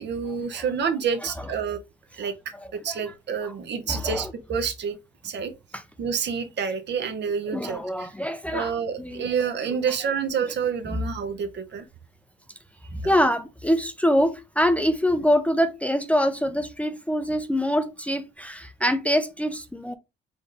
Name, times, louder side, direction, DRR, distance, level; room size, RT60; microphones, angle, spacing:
voice 1, 0.0-1.8 2.2-2.3 2.7-5.0 5.2-5.5 6.0-8.1 8.5-11.9 13.0-13.1, right 6 dB, 60° right, 0.9 m, -28 dB
voice 2, 1.2-1.5 2.5-3.1 3.4-3.5 3.9-4.3 5.7-5.8 7.5-9.3 10.9-11.0 12.9-19.9, equal, 5° left, 0.5 m, -25 dB
5.0 x 2.5 x 3.9 m
cardioid pair, 90°, 20 cm